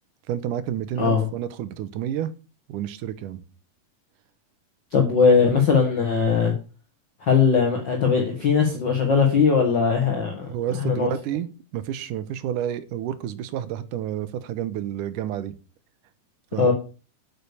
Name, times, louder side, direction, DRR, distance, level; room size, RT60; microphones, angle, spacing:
voice 1, 0.3-2.3 2.7-3.4 10.5-15.5 16.5-16.7, right 10 dB, 80° right, 14 dB, 2.4 m, -30 dB
voice 2, 4.9-6.5 7.3-10.5 10.8-11.1 16.6-16.7, left 5 dB, 40° left, 1 dB, 2.0 m, -19 dB
8.9 x 6.8 x 6.9 m, 0.35 s
omnidirectional pair, 3.7 m